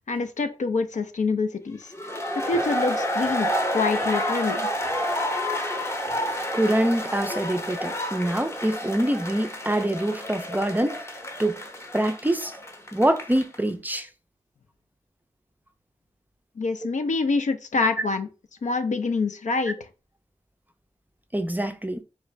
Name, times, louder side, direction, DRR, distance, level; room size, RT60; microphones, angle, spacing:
voice 1, 0.1-1.9 2.3-4.7 16.6-18.3 18.6-19.8, left 3 dB, 70° left, 0.5 m, -26 dB
sound 1, 1.9-13.6, equal, 20° left, 0.8 m, -29 dB
voice 2, 6.5-11.0 11.4-11.6 11.9-12.5 12.9-14.1 21.3-22.0, right 1 dB, 15° right, 0.4 m, -25 dB
4.4 x 2.4 x 3.1 m
wide cardioid pair, 60°, 13 cm